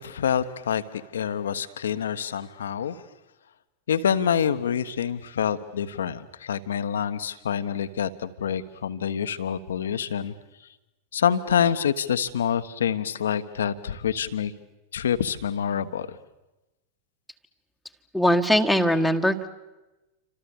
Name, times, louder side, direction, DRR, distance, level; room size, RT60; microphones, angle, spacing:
voice 1, 0.0-3.0 3.9-10.3 11.1-14.5 14.9-16.2, left 8 dB, 65° left, 12 dB, 1.3 m, -26 dB
voice 2, 18.1-19.5, equal, ahead, 7 dB, 1.7 m, -21 dB
29.0 x 25.5 x 7.2 m, 1.0 s
figure-of-eight pair, 90°, 0 cm